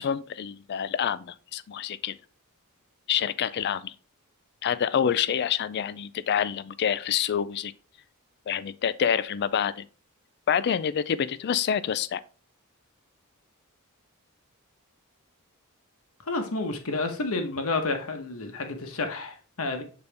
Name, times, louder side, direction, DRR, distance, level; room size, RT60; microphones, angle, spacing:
voice 1, 0.0-2.2 3.1-3.9 4.6-7.7 8.5-9.9 10.5-12.2, left 8 dB, 50° left, 0.3 m, -27 dB
voice 2, 16.3-19.8, left 3 dB, 70° left, 1.1 m, -30 dB
7.0 x 4.0 x 3.3 m
head